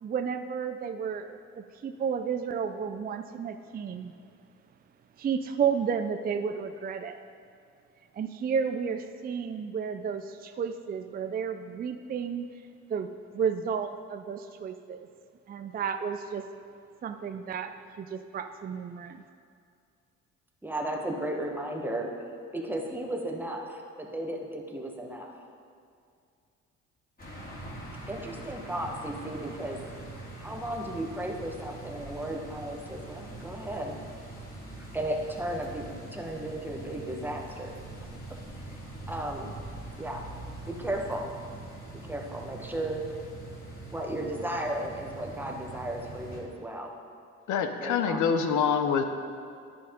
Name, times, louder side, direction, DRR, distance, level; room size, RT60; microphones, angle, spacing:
voice 1, 0.0-4.1 5.2-7.2 8.1-12.6 12.9-15.1 15.5-16.5 17.0-19.2, right 7 dB, 30° right, 8 dB, 0.4 m, -32 dB
voice 2, 20.6-22.1 22.5-25.3 28.1-29.8 30.4-34.0 34.8-37.8 38.7-38.8 39.1-39.5 40.0-40.3 40.6-41.3 42.0-43.0 43.9-46.9 47.8-48.3, right 1 dB, 5° right, 1 dB, 1.1 m, -35 dB
sound 1, 27.2-46.4, right 2 dB, 30° left, 2.3 m, -43 dB
voice 3, 47.5-49.0, left 6 dB, 80° left, 7 dB, 0.7 m, -25 dB
9.8 x 5.7 x 5.2 m, 2.3 s
cardioid pair, 90°, 30 cm